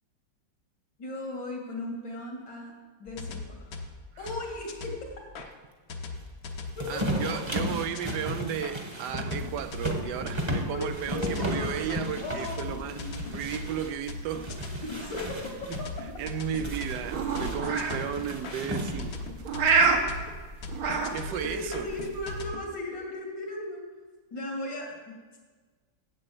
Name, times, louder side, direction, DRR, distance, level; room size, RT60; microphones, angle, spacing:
voice 1, 1.0-2.7 3.0-3.8 4.2-5.2 6.8-7.6 10.7-11.8 12.2-13.2 14.9-15.9 21.2-23.8 24.3-25.4, left 2 dB, 75° left, 0 dB, 2.8 m, -37 dB
sound 1, 3.1-5.5 5.9-8.7 9.2-22.6, left 4 dB, 55° left, 1.3 m, -41 dB
sound 2, 6.8-13.9 14.3-15.9 16.6-19.2, equal, 20° right, 1.0 m, -34 dB
voice 2, 6.9-13.0 13.3-14.5 15.7-15.8 16.2-19.2 20.8-21.9, right 9 dB, 75° right, 11 dB, 1.1 m, -34 dB
sound 3, 9.3-22.5, right 4 dB, 60° right, 1.3 m, -32 dB
7.7 x 7.7 x 7.7 m, 1.4 s
omnidirectional pair, 2.0 m